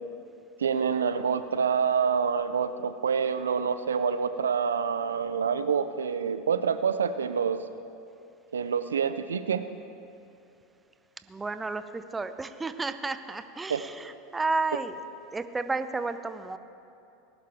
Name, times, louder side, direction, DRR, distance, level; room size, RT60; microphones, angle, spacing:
voice 1, 0.6-7.6 8.5-9.6 13.7-13.8, right 6 dB, 85° right, 11 dB, 0.4 m, -27 dB
voice 2, 11.3-15.0 15.3-16.6, right 3 dB, 15° right, 11 dB, 0.6 m, -32 dB
19.5 x 11.5 x 3.5 m, 2.6 s
hypercardioid pair, 85°, 0 cm